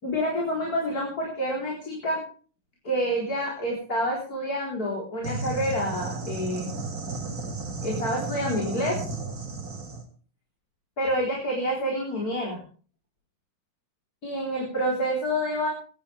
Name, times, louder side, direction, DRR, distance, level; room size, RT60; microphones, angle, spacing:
voice 1, 0.0-2.2 2.8-6.7 7.8-9.0 11.0-12.6 14.2-15.7, equal, 45° left, -2 dB, 4.7 m, -28 dB
sound 1, 5.2-10.0, right 3 dB, 45° right, 3.1 m, -33 dB
22.0 x 12.0 x 3.5 m, 0.40 s
omnidirectional pair, 2.2 m